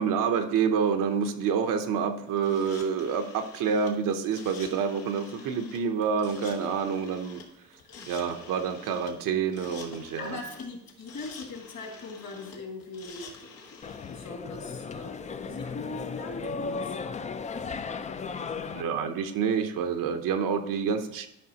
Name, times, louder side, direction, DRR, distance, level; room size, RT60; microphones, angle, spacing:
voice 1, 0.0-7.4 8.1-10.4 18.5-21.3, right 6 dB, 70° right, 7 dB, 0.8 m, -28 dB
sound 1, 2.4-14.3, left 5 dB, 85° left, 1.5 m, -48 dB
voice 2, 10.2-16.9 18.4-18.8, left 3 dB, 50° left, 2 dB, 2.1 m, -41 dB
sound 2, 13.8-18.8, left 5 dB, 20° left, 0.3 m, -36 dB
12.0 x 5.4 x 2.9 m, 0.81 s
cardioid pair, 100°, 34 cm